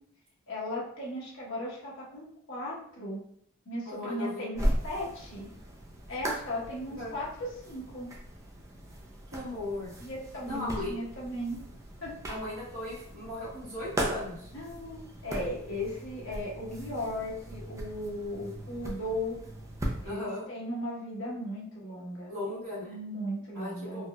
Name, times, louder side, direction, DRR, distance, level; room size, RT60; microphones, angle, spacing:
voice 1, 0.5-3.2 3.7-5.5 6.1-8.1 10.0-11.6 12.0-12.2 14.5-19.4 20.0-22.3 22.8-24.0, left 1 dB, 60° left, -5 dB, 1.1 m, -36 dB
voice 2, 3.8-4.7 7.0-7.1 9.3-9.9 10.4-10.9 12.3-14.5 20.0-20.4 22.3-23.0 23.5-24.1, left 1 dB, 80° right, -10 dB, 1.3 m, -37 dB
sound 1, 4.5-20.1, right 1 dB, 15° right, 0.4 m, -38 dB
4.0 x 2.3 x 2.3 m, 0.69 s
head